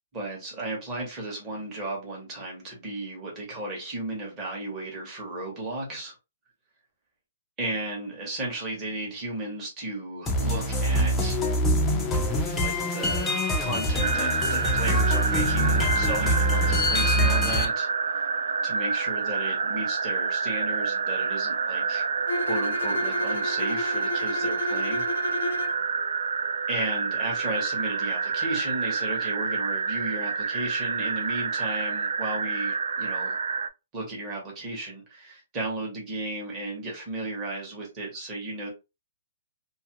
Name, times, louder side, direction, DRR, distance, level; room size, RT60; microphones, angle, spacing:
voice 1, 0.1-6.1 7.6-11.4 12.6-18.3 18.6-22.1 22.5-25.0 26.7-33.4 33.9-38.7, right 2 dB, 15° right, 0.8 m, -34 dB
sound 1, 10.3-17.6, equal, 10° left, 0.4 m, -24 dB
sound 2, 14.0-33.7, right 5 dB, 80° right, 0.3 m, -28 dB
Bowed string instrument, 22.3-25.8, left 2 dB, 70° left, 0.5 m, -31 dB
2.5 x 2.3 x 2.8 m
hypercardioid pair, 180°, 0 cm